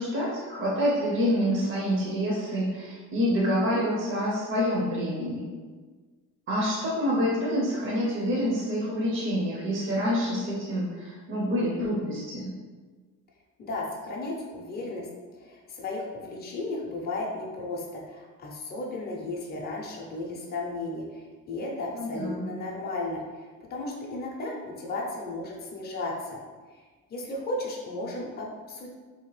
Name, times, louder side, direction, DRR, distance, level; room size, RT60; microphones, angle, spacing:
voice 1, 0.0-5.4 6.5-12.5 21.9-22.5, equal, 40° right, -5 dB, 0.6 m, -27 dB
voice 2, 13.6-15.1 15.3-26.4 26.7-28.9, left 2 dB, 30° left, -2 dB, 0.5 m, -35 dB
2.8 x 2.1 x 3.1 m, 1.4 s
cardioid pair, 125°, 33 cm